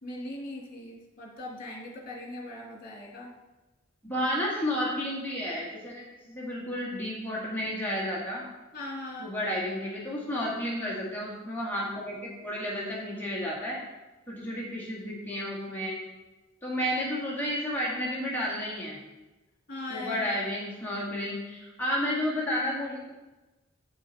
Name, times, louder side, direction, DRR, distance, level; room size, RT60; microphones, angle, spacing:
voice 1, 0.0-3.3 8.7-9.3 19.7-20.3, left 1 dB, 45° left, -1 dB, 2.4 m, -39 dB
voice 2, 4.0-8.4 9.2-13.8 14.3-16.0 16.6-19.0 19.9-23.0, equal, 10° left, -6 dB, 2.0 m, -32 dB
8.1 x 7.9 x 4.3 m, 1.1 s
head